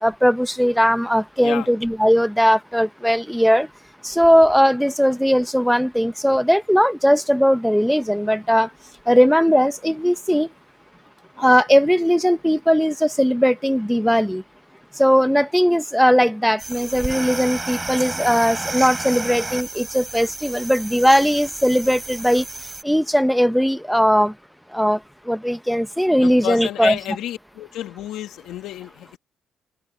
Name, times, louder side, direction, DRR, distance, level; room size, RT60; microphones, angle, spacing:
voice 1, 0.0-3.7 4.0-8.7 9.1-10.5 11.4-14.4 15.0-22.4 22.8-24.3 24.7-25.0 25.3-27.0, equal, ahead, 0.8 m, -18 dB
sound 1, 16.6-22.8, right 2 dB, 20° right, 6.3 m, -31 dB
voice 2, 26.2-29.2, left 12 dB, 85° left, 2.0 m, -30 dB
cardioid pair, 90°, 0 cm